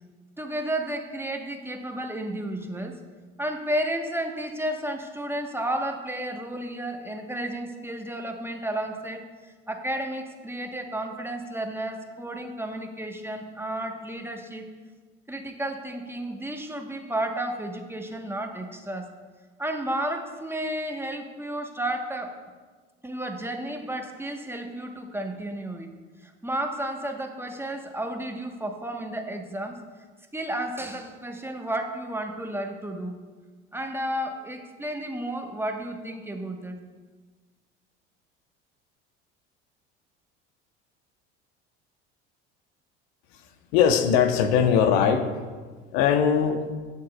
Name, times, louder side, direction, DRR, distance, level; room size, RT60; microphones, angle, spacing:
voice 1, 0.4-3.0 3.4-9.2 9.7-14.7 15.3-19.1 19.6-22.3 23.0-25.9 26.2-29.8 30.3-33.2 33.7-36.8, right 1 dB, 5° right, 4 dB, 1.0 m, -32 dB
voice 2, 43.7-45.3 45.9-46.6, left 7 dB, 65° left, 8 dB, 0.9 m, -20 dB
18.5 x 6.6 x 2.3 m, 1.4 s
hypercardioid pair, 65°, 33 cm